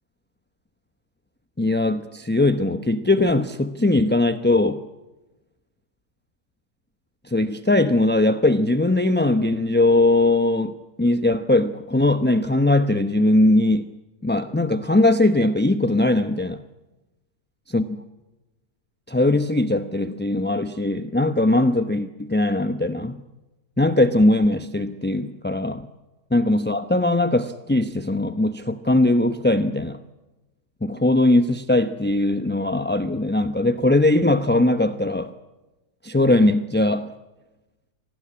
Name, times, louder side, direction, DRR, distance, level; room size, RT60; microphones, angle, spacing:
voice 1, 1.6-4.8 7.3-13.8 14.2-16.6 17.7-18.0 19.1-23.2 23.8-25.8 26.3-30.0 30.8-35.3 36.0-37.1, left 2 dB, 10° left, 9 dB, 0.6 m, -20 dB
26.5 x 19.0 x 8.6 m, 1.1 s
omnidirectional pair, 1.6 m